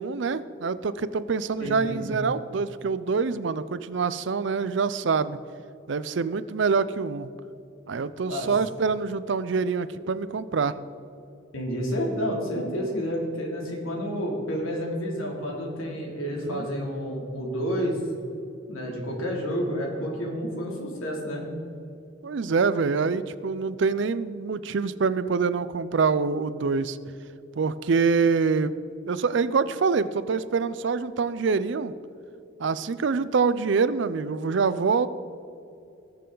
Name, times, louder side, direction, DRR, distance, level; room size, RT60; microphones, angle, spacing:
voice 1, 0.0-5.4 5.9-7.3 7.9-10.8 16.4-16.7 22.2-27.0 27.6-28.7 29.1-31.9 32.6-35.1, right 5 dB, 60° right, 15 dB, 0.4 m, -25 dB
voice 2, 1.6-2.0 8.3-8.5 11.5-18.0 18.7-21.5, equal, 85° left, -1 dB, 2.8 m, -30 dB
19.0 x 6.8 x 3.9 m, 2.7 s
head